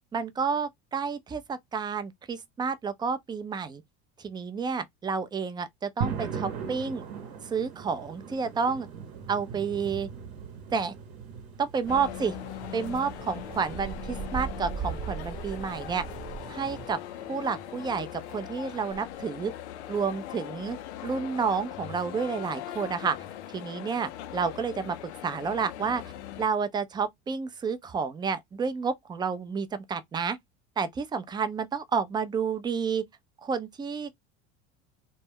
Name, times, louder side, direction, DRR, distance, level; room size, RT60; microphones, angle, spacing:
voice 1, 0.1-3.8 4.2-7.0 7.4-8.9 9.3-10.1 10.7-10.9 11.6-12.4 12.7-16.0 16.5-17.0 17.3-19.5 19.9-20.8 21.0-23.2 23.5-25.0 25.2-26.0 26.4-30.4 30.8-33.0 33.4-34.1, right 5 dB, 15° right, 0.3 m, -30 dB
sound 1, 6.0-18.9, right 6 dB, 70° right, 0.8 m, -41 dB
sound 2, 11.8-16.9, right 7 dB, 35° right, 0.7 m, -39 dB
sound 3, 11.9-26.5, left 12 dB, 85° left, 0.5 m, -41 dB
2.2 x 2.1 x 3.3 m
hypercardioid pair, 85°, 33 cm